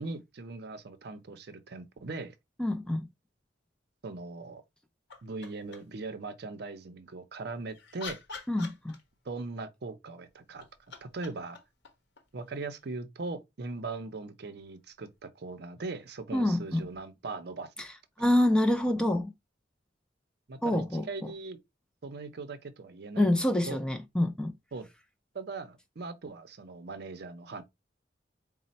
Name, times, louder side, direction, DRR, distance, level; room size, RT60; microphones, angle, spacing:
voice 1, 0.0-2.3 4.0-4.6 5.2-8.2 9.2-10.7 11.0-11.6 12.3-17.7 20.5-21.6 22.0-23.3 23.7-23.8 24.7-24.9 25.3-27.6, right 3 dB, 60° right, 0.6 m, -40 dB
voice 2, 2.6-3.1 8.5-9.0 16.3-16.8 17.8-17.9 18.2-19.3 20.6-21.0 23.2-24.5, left 1 dB, 5° left, 0.4 m, -26 dB
sound 1, 5.1-6.0 7.5-9.4 10.4-13.0 15.0-15.1, left 5 dB, 60° left, 0.9 m, -47 dB
4.1 x 2.1 x 4.0 m
head